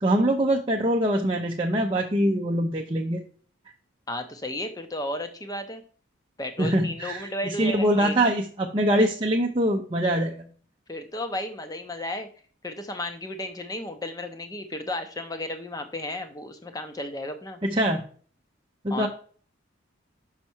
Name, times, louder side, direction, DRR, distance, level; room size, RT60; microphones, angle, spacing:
voice 1, 0.0-3.2 6.6-10.5 17.6-18.0 18.8-19.1, right 1 dB, 25° right, 0 dB, 0.6 m, -24 dB
voice 2, 4.1-5.8 6.4-8.1 10.9-12.3 12.6-17.6 18.9-19.1, left 1 dB, 20° left, 8 dB, 0.8 m, -33 dB
5.9 x 5.7 x 4.5 m, 0.44 s
head